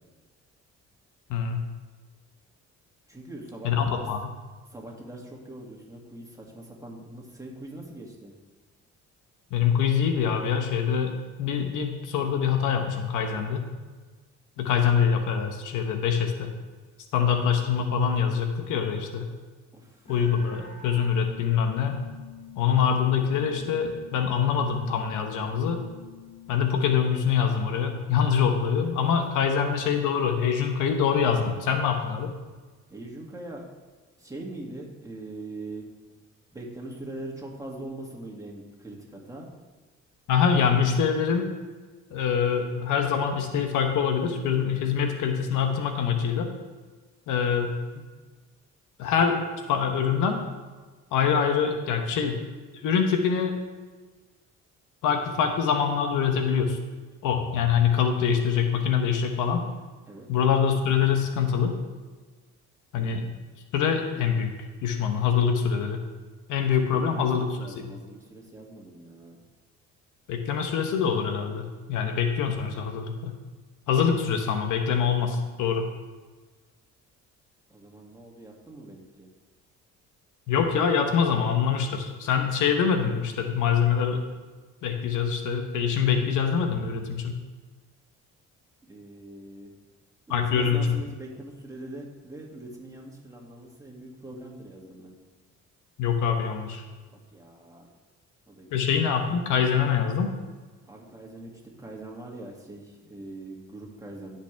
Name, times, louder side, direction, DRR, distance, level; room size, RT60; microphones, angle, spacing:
voice 1, 1.3-1.6 3.6-4.2 9.5-13.7 14.6-16.5 17.1-19.3 20.1-22.0 22.6-25.8 26.5-32.3 40.3-41.5 42.1-46.5 47.3-48.0 49.0-50.4 51.1-52.4 52.8-53.6 55.0-56.8 57.2-59.6 60.3-61.7 62.9-63.2 63.7-64.5 64.8-66.0 66.5-67.5 70.3-73.4 73.9-75.9 80.5-84.2 84.8-87.4 90.3-90.8 96.0-96.8 98.7-100.3, left 7 dB, 90° left, 5 dB, 1.1 m, -24 dB
voice 2, 3.1-4.1 4.7-8.3 14.7-14.8 19.7-20.1 32.9-33.7 34.2-35.9 36.5-39.5 60.1-60.3 62.9-63.4 66.8-69.4 77.7-79.3 88.9-89.7 90.3-95.2 97.1-97.9 98.5-99.0 100.9-101.5 101.8-104.4, right 2 dB, 10° right, -2 dB, 2.4 m, -42 dB
sound 1, 20.1-26.7, left 7 dB, 25° left, 2.0 m, -46 dB
16.0 x 5.8 x 3.5 m, 1.3 s
cardioid pair, 90°, 30 cm